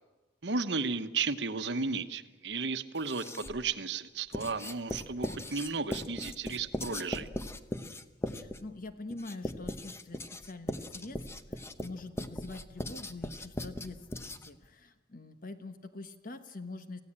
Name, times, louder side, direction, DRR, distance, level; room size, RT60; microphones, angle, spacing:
voice 1, 0.4-7.3, right 4 dB, 70° right, 10 dB, 1.1 m, -34 dB
Writing, 3.0-3.7 4.3-14.7, left 1 dB, 15° left, 0.9 m, -39 dB
voice 2, 8.3-17.0, left 2 dB, 50° left, 9 dB, 1.3 m, -45 dB
27.5 x 16.5 x 8.8 m, 1.1 s
head